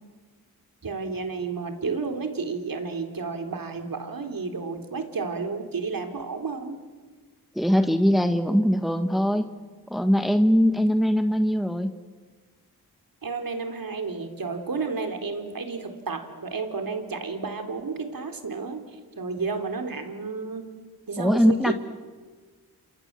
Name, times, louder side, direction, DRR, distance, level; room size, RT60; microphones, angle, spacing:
voice 1, 0.8-6.8 13.2-18.9 19.2-20.7 21.1-21.7, right 4 dB, 65° right, 6 dB, 3.8 m, -31 dB
voice 2, 7.5-9.5 9.9-11.9 21.2-21.7, equal, ahead, 8 dB, 1.5 m, -21 dB
29.0 x 27.0 x 7.6 m, 1.4 s
cardioid pair, 50°, 37 cm